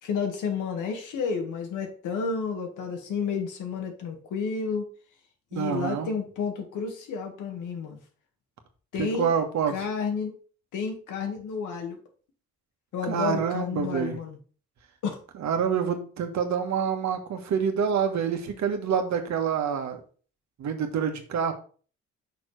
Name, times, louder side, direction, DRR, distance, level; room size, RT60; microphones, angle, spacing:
voice 1, 0.0-4.9 5.5-8.0 8.9-9.3 9.7-10.3 10.7-12.0 12.9-14.4 15.0-15.2, left 5 dB, 85° left, 4 dB, 1.8 m, -31 dB
voice 2, 5.5-6.1 9.0-9.9 13.1-14.2 15.4-20.0 20.6-21.5, right 7 dB, 65° right, 6 dB, 1.5 m, -27 dB
5.9 x 4.6 x 4.9 m, 0.40 s
cardioid pair, 90°, 30 cm